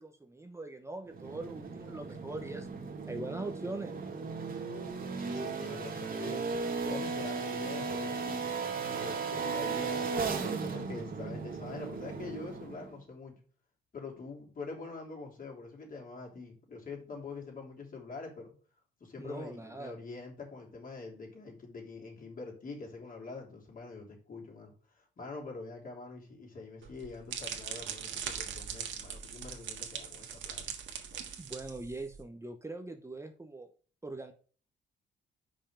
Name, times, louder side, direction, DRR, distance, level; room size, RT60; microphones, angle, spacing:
voice 1, 0.0-2.7 3.1-4.0 19.2-20.0 31.4-33.7 34.0-34.3, right 2 dB, 15° right, 5 dB, 0.8 m, -41 dB
sound 1, 1.1-12.9, right 4 dB, 45° right, 1.6 m, -36 dB
voice 2, 5.2-8.5 8.9-13.4 13.9-18.5 19.0-30.7, left 3 dB, 45° left, -1 dB, 3.2 m, -45 dB
sound 2, 26.8-32.2, right 8 dB, 70° right, 1.5 m, -41 dB
5.5 x 5.4 x 5.0 m, 0.41 s
cardioid pair, 90°, 20 cm